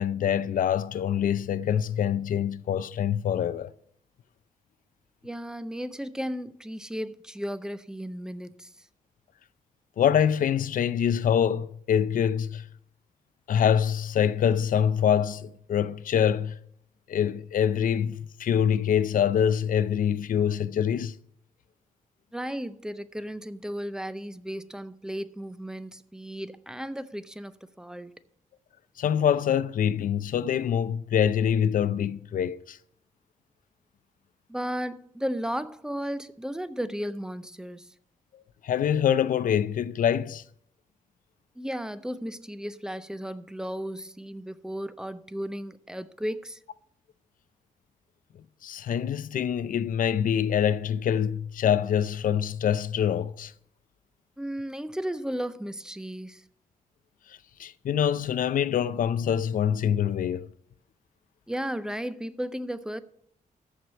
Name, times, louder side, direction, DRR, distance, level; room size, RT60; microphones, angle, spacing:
voice 1, 0.0-3.7 10.0-12.7 13.5-16.6 17.1-21.2 29.0-32.8 38.6-40.4 48.6-53.5 57.3-60.5, left 9 dB, 75° left, 0.6 m, -25 dB
voice 2, 5.2-8.7 22.3-28.2 34.5-37.9 41.6-46.6 54.4-56.4 61.5-63.0, equal, 5° right, 0.5 m, -34 dB
13.5 x 4.8 x 7.0 m
wide cardioid pair, 140°, 14 cm